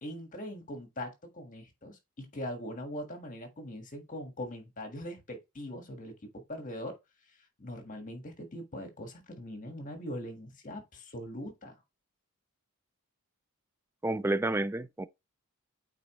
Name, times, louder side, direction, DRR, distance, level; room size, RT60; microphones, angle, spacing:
voice 1, 0.0-7.0 7.6-11.7, left 1 dB, 35° left, 1.6 m, -41 dB
voice 2, 14.0-15.1, right 2 dB, 10° right, 0.3 m, -30 dB
8.5 x 3.9 x 3.0 m
head